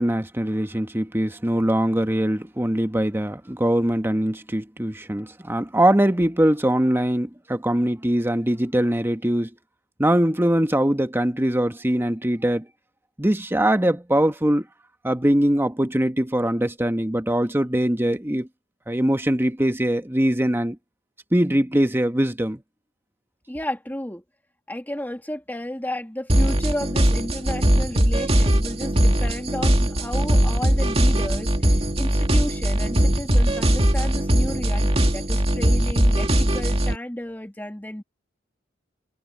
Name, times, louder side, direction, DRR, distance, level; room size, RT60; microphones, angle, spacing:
voice 1, 0.0-9.5 10.0-12.6 13.2-14.6 15.0-18.5 18.9-20.8 21.3-22.6, right 1 dB, 10° right, 1.2 m, -22 dB
voice 2, 23.5-24.2 24.7-38.0, left 1 dB, 10° left, 2.2 m, -32 dB
sound 1, 26.3-37.0, right 1 dB, 30° right, 2.2 m, -20 dB
head